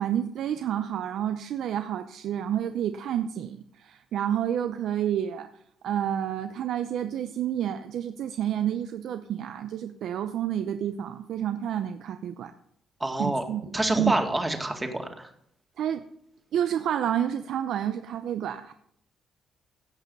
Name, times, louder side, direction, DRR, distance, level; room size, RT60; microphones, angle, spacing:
voice 1, 0.0-5.5 5.8-12.5 13.2-13.6 14.0-14.1 15.8-16.0 16.5-18.7, right 10 dB, 75° right, 8 dB, 0.6 m, -29 dB
voice 2, 13.0-13.4 13.7-15.3, right 1 dB, 15° right, 4 dB, 2.0 m, -27 dB
16.5 x 6.0 x 5.4 m, 0.69 s
cardioid pair, 90°, 0 cm